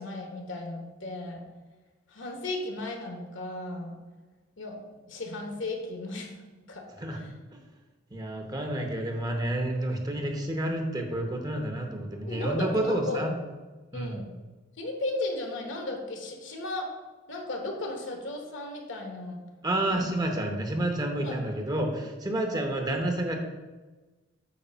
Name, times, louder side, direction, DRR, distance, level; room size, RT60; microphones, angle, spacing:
voice 1, 0.0-1.4 2.1-4.0 4.6-4.8 5.1-6.3 6.7-6.8 7.1-7.2 12.3-13.3 13.9-14.3 14.8-16.9 17.3-19.4 19.9-20.1 21.2-21.4, left 2 dB, 65° left, 2 dB, 1.2 m, -35 dB
voice 2, 8.1-13.3 13.9-14.2 19.6-23.4, right 1 dB, 20° right, 3 dB, 0.8 m, -29 dB
8.4 x 3.2 x 5.6 m, 1.2 s
head